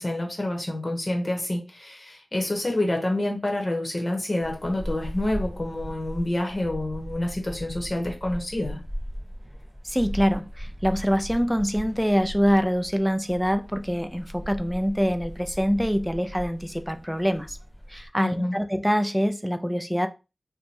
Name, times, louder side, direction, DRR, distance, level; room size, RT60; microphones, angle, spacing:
voice 1, 0.0-8.8 18.2-18.6, left 1 dB, 35° left, 1.0 m, -28 dB
sound 1, 4.4-18.1, equal, 15° left, 1.4 m, -38 dB
voice 2, 9.8-17.6 17.9-20.1, equal, ahead, 0.4 m, -25 dB
2.9 x 2.2 x 4.2 m
wide cardioid pair, 75°, 0 cm